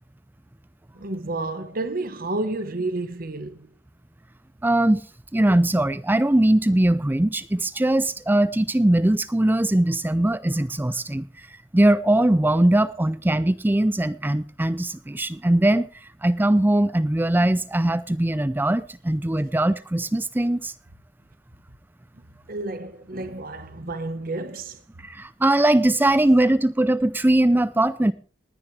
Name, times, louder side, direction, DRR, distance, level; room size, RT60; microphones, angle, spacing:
voice 1, 0.9-3.6 22.5-24.8, right 2 dB, 55° right, 1.2 m, -30 dB
voice 2, 4.6-5.0 5.3-11.3 11.7-15.9 16.2-20.7 23.8-23.9 25.0-28.1, right 1 dB, 10° right, 0.5 m, -20 dB
19.5 x 10.5 x 3.3 m
head